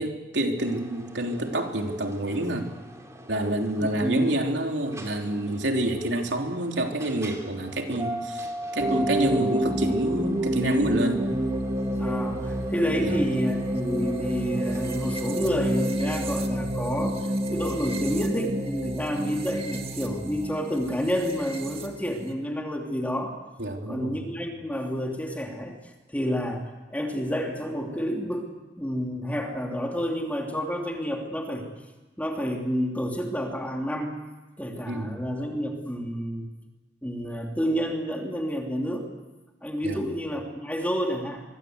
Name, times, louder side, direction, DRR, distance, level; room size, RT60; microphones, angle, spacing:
voice 1, 0.0-2.7 3.3-11.3 13.0-13.2 23.6-24.3 34.9-35.3 39.8-40.0, right 1 dB, 85° right, 3 dB, 3.4 m, -28 dB
sound 1, 0.6-15.5, equal, 15° right, 3.5 m, -40 dB
voice 2, 3.8-4.4 11.9-23.3 23.9-28.5 28.8-31.7 32.2-34.1 34.6-36.5 37.0-39.0 39.6-41.4, equal, 10° left, 1 dB, 3.0 m, -29 dB
sound 2, 8.8-22.3, right 1 dB, 35° right, 2.3 m, -29 dB
25.0 x 23.0 x 8.1 m, 1.2 s
head